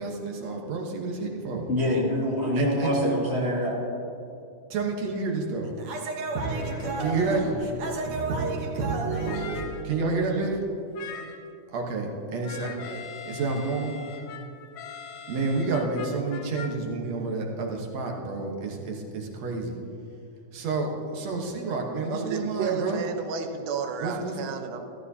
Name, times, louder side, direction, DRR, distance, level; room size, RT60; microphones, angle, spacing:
voice 1, 0.0-1.7 2.6-2.9 4.7-10.6 11.7-12.7 13.2-14.0 15.3-19.8 20.5-23.0 24.0-24.3, right 3 dB, 65° right, 0 dB, 2.2 m, -29 dB
voice 2, 1.7-3.7, left 1 dB, 60° left, -6 dB, 0.6 m, -25 dB
sound 1, 6.4-7.7 8.2-8.3 9.1-10.0 10.9-11.5 12.4-16.7, left 7 dB, 75° left, 1.7 m, -42 dB
voice 3, 22.1-24.9, right 5 dB, 80° right, 5 dB, 2.4 m, -32 dB
14.5 x 14.0 x 2.8 m, 2.6 s
omnidirectional pair, 3.6 m